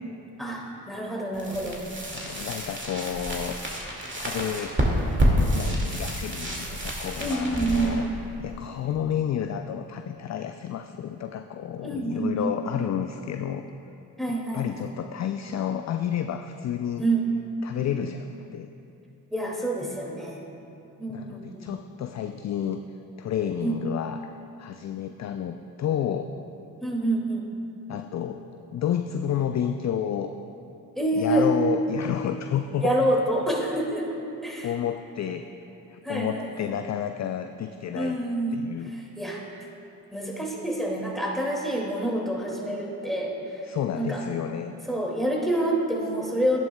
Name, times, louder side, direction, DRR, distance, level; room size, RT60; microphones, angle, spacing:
voice 1, 0.4-1.8 7.2-8.2 11.8-12.5 14.2-14.9 17.0-17.3 19.3-20.5 21.0-21.7 23.6-23.8 26.8-27.4 31.0-31.5 32.8-34.1 34.4-34.7 36.0-36.7 37.9-39.4 40.1-44.2 44.9-46.6, right 1 dB, ahead, -2 dB, 2.2 m, -27 dB
sound 1, 1.3-9.1, equal, 25° right, 2.2 m, -28 dB
voice 2, 2.1-3.6 4.2-4.8 5.4-8.0 8.4-13.6 14.3-17.0 17.6-18.7 21.1-22.8 23.2-24.2 24.6-26.3 27.9-28.4 28.7-30.4 31.2-33.0 34.6-35.5 35.9-38.2 38.5-38.9 43.7-44.8, left 9 dB, 40° left, 7 dB, 0.4 m, -30 dB
12.0 x 10.5 x 2.3 m, 2.8 s
hypercardioid pair, 40°, 46 cm